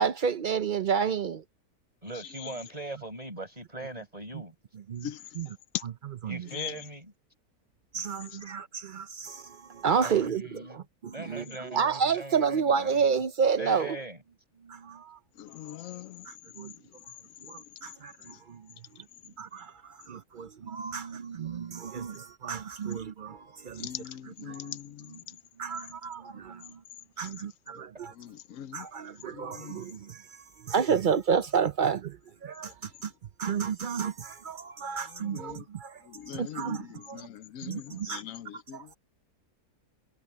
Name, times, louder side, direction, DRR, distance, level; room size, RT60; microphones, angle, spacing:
voice 1, 0.0-1.4 4.9-5.1 5.4-5.5 6.3-6.4 7.9-14.0 14.7-15.2 16.3-16.7 17.5-18.6 19.4-23.9 24.5-24.6 25.6-26.8 27.2-28.1 28.7-30.2 30.7-32.2 32.4-33.1 33.4-36.0 36.3-37.3 37.6-38.2 38.7-38.9, right 6 dB, 70° right, 0.4 m, -30 dB
voice 2, 2.0-4.5 6.3-7.1 9.9-13.2 13.6-14.2, right 1 dB, 25° right, 5.8 m, -40 dB
voice 3, 5.0-5.8 6.5-6.7 8.3-8.4 15.4-16.3 16.6-16.9 17.5-17.9 18.3-18.4 23.7-25.4 27.2-27.3 27.7-27.9 28.1-28.9 29.3-29.9 35.0-35.7 36.0-38.9, left 11 dB, 65° left, 1.0 m, -41 dB
omnidirectional pair, 1.7 m